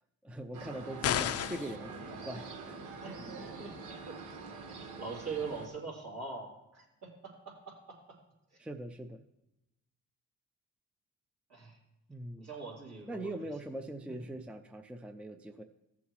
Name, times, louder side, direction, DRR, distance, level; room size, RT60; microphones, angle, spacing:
voice 1, 0.2-2.8 8.6-9.2 12.1-12.5 13.1-15.6, right 1 dB, 5° right, 8 dB, 0.5 m, -42 dB
sound 1, 0.5-5.7, right 4 dB, 75° right, 1.3 m, -45 dB
sound 2, 1.0-1.8, left 10 dB, 55° left, 0.5 m, -31 dB
voice 2, 3.0-4.1 4.5-8.0 11.5-11.8 12.4-13.4 14.0-14.2, right 4 dB, 60° right, -3 dB, 3.2 m, -43 dB
14.5 x 7.2 x 3.1 m, 0.91 s
cardioid pair, 90°, 30 cm